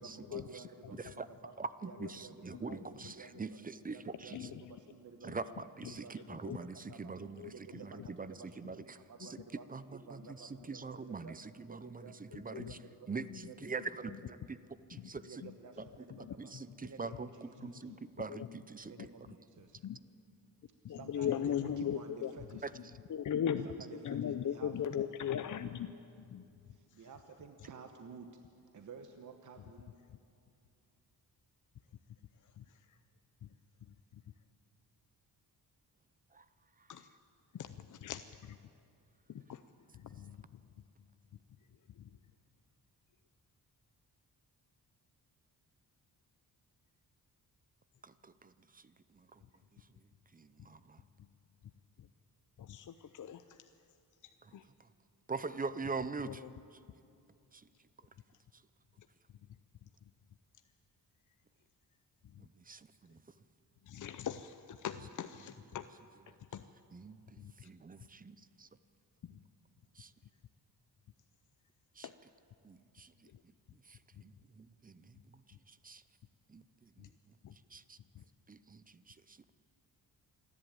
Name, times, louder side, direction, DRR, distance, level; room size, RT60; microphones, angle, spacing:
voice 1, 0.0-1.5 1.8-3.6 3.9-5.6 5.9-7.2 7.4-9.7 9.9-11.4 11.7-13.1 13.4-13.6 13.9-14.4 15.2-16.5 16.8-17.9 18.8-19.8 20.9-22.6 23.6-24.7 26.7-28.3 28.7-29.9, right 5 dB, 55° right, 6 dB, 1.1 m, -53 dB
voice 2, 0.9-1.3 1.6-4.5 5.2-9.4 9.7-12.8 13.1-14.6 14.9-15.4 15.8-15.9 16.4-19.1 22.6-22.7 36.3-36.5 36.8-36.9 48.0-49.4 49.8-50.0 50.3-51.0 54.4-54.9 55.3-56.4 56.7-56.8 57.5-57.7 58.0-58.1 58.5-58.6 62.4-63.2 66.9-68.7 69.9-70.1 71.9-72.1 72.6-73.3 73.7-76.0 76.5-77.1 77.7-78.0 78.5-79.5, right 4 dB, 25° right, 14 dB, 0.6 m, -44 dB
voice 3, 4.3-4.8 6.4-6.6 7.4-7.5 8.0-8.1 12.5-12.7 13.3-13.4 16.1-16.3 18.3-18.5 19.8-20.0 20.8-22.3 23.1-23.7 24.0-25.9 26.3-26.5 32.6-32.7 36.9-37.1 37.5-38.6 39.3-39.6 39.9-40.4 42.0-42.1 52.6-53.6 54.5-54.6 56.3-56.4 63.9-65.8 66.5-66.6 67.4-67.7 69.2-69.4 72.0-72.1 77.0-77.1 77.4-77.5 78.2-78.3, left 9 dB, 55° left, 10 dB, 0.6 m, -38 dB
28.0 x 11.0 x 8.8 m, 2.5 s
wide cardioid pair, 130°, 37 cm